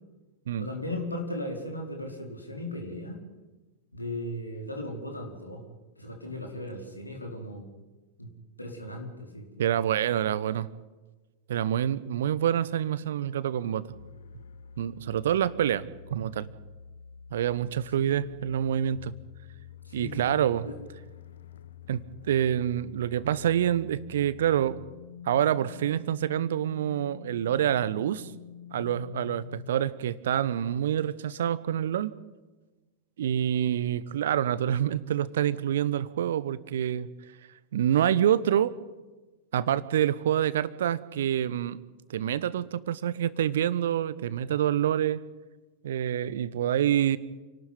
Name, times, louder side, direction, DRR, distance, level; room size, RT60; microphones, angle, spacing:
voice 1, 0.6-3.2 3.9-5.6 6.0-7.6 8.2-8.3 8.6-9.8 17.9-18.2 19.8-20.3 20.6-20.7, left 1 dB, 85° left, 2 dB, 4.6 m, -37 dB
voice 2, 9.6-10.7 11.5-13.9 14.8-16.5 17.3-19.1 19.9-20.7 21.9-24.8 25.2-28.3 28.7-32.1 33.2-37.1 37.7-38.7 39.5-41.8 42.1-45.2 45.8-47.2, right 10 dB, 60° right, 18 dB, 1.0 m, -27 dB
sound 1, 13.9-29.7, left 8 dB, 65° left, 1.0 m, -47 dB
28.5 x 12.5 x 9.5 m, 1.2 s
figure-of-eight pair, 90°, 0 cm